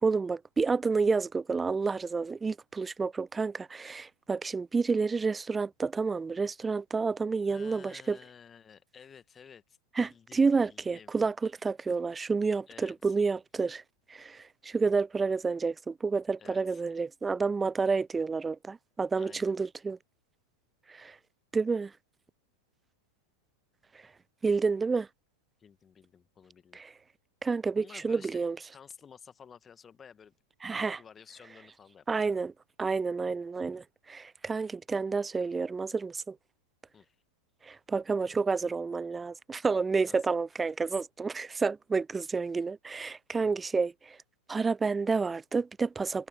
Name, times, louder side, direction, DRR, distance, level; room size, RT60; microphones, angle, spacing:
voice 1, 0.0-8.2 10.0-13.8 14.1-20.0 20.9-21.2 21.5-21.9 24.4-25.1 26.7-26.9 27.4-28.6 30.6-31.0 32.1-32.5 32.8-36.4 37.6-44.2 44.5-46.3, right 4 dB, 15° right, 0.4 m, -29 dB
voice 2, 7.5-11.1 12.7-13.2 16.4-16.8 19.2-19.5 25.6-26.8 27.7-28.4 28.7-30.3 30.8-32.4 36.9-37.2 40.1-40.3 43.4-43.5, left 7 dB, 20° left, 1.9 m, -53 dB
figure-of-eight pair, 90°, 0 cm